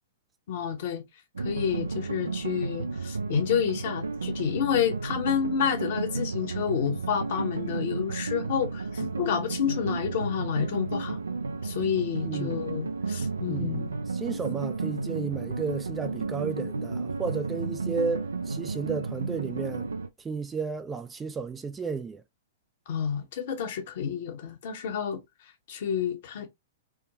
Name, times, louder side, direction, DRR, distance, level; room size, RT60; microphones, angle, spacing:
voice 1, 0.5-1.0 1.4-11.2 11.6-13.9 22.9-25.2 25.7-26.5, left 8 dB, 60° left, 1.0 m, -29 dB
sound 1, 1.3-20.1, right 4 dB, 85° right, 0.5 m, -33 dB
voice 2, 12.2-12.7 13.5-19.9 20.2-22.2, right 5 dB, 15° right, 0.3 m, -33 dB
3.5 x 2.2 x 2.8 m
hypercardioid pair, 115°, 0 cm